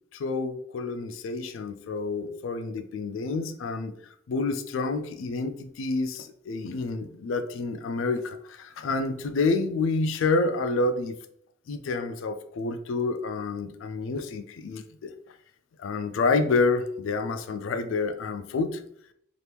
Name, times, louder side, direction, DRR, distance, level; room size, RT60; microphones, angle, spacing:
voice 1, 0.1-3.9 4.3-11.1 11.7-14.8 15.8-18.8, left 3 dB, 85° left, 9 dB, 0.4 m, -28 dB
2.9 x 2.5 x 3.3 m, 0.69 s
head